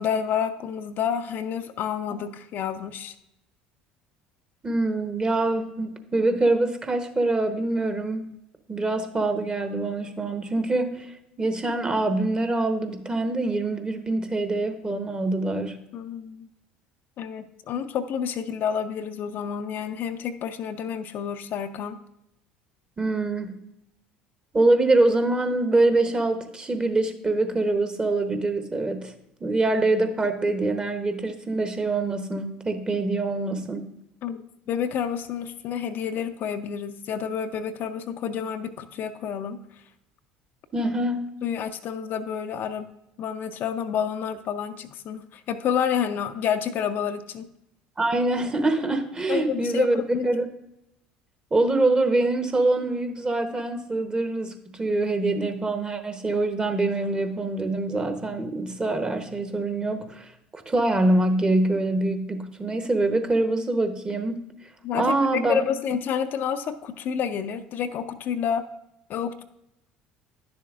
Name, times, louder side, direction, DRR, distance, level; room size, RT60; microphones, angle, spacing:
voice 1, 0.0-3.1 15.9-16.5 17.2-22.0 34.2-39.8 40.8-40.9 41.4-42.9 43.2-47.5 49.3-50.3 64.8-68.7 69.1-69.4, left 8 dB, 50° left, 8 dB, 0.5 m, -29 dB
voice 2, 4.6-8.3 8.7-11.1 11.4-15.8 23.0-23.6 24.5-29.1 29.4-33.9 40.7-41.2 48.0-50.5 51.5-64.4 64.9-65.6, right 2 dB, 20° right, 7 dB, 1.0 m, -24 dB
10.5 x 6.9 x 2.5 m, 0.84 s
hypercardioid pair, 65°, 4 cm